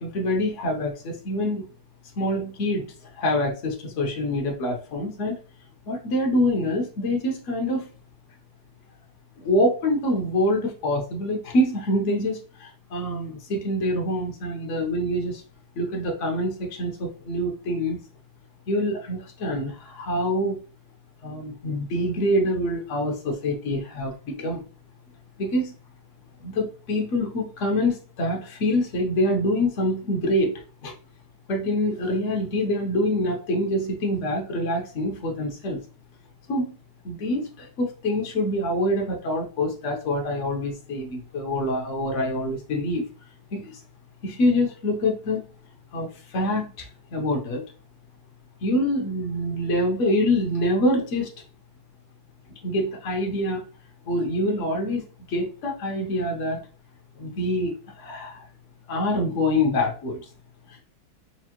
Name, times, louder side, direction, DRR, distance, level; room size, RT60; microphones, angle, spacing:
voice 1, 0.0-1.6 2.2-5.4 5.9-7.9 9.4-15.4 15.8-18.0 18.7-20.6 21.2-24.6 25.4-25.7 26.4-30.5 30.8-30.9 31.5-35.8 36.5-36.7 37.0-43.0 43.5-43.8 44.2-45.4 45.9-47.6 48.6-51.3 52.6-53.6 54.1-56.6 57.2-58.4 58.9-60.3 60.7-60.8, left 1 dB, 65° left, 0 dB, 0.7 m, -25 dB
4.7 x 2.5 x 2.9 m, 0.39 s
omnidirectional pair, 2.4 m